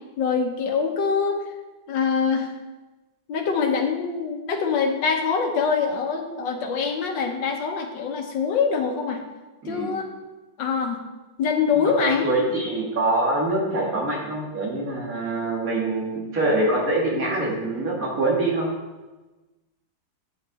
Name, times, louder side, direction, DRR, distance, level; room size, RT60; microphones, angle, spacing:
voice 1, 0.2-1.4 1.9-2.5 3.3-9.2 9.7-10.1 10.6-11.0 11.4-12.3, left 5 dB, 65° left, 3 dB, 1.7 m, -24 dB
voice 2, 9.6-10.0 11.7-18.7, right 2 dB, 45° right, -3 dB, 2.5 m, -24 dB
9.5 x 7.8 x 4.1 m, 1.2 s
omnidirectional pair, 2.2 m